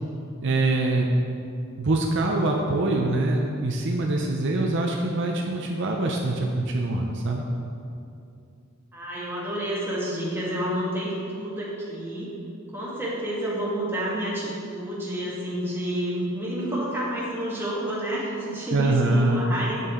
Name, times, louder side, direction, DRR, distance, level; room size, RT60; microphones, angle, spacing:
voice 1, 0.4-1.1 1.8-7.4 18.7-19.4, right 2 dB, 60° right, 0 dB, 0.7 m, -24 dB
voice 2, 8.9-12.3 12.7-19.8, right 1 dB, 10° right, -7 dB, 1.8 m, -29 dB
8.4 x 6.8 x 3.7 m, 2.5 s
head